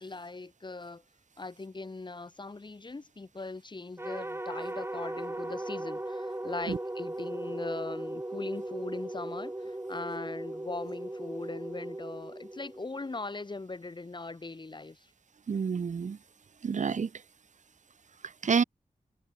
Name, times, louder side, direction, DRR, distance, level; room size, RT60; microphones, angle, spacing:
voice 1, 0.0-1.0 1.4-15.1, left 3 dB, 35° left, 0.9 m, -40 dB
sound 1, 4.0-13.3, right 1 dB, 15° right, 2.3 m, -38 dB
voice 2, 15.5-16.2 16.6-17.1 18.4-18.6, right 6 dB, 60° right, 0.5 m, -28 dB
wide cardioid pair, 90°, 14 cm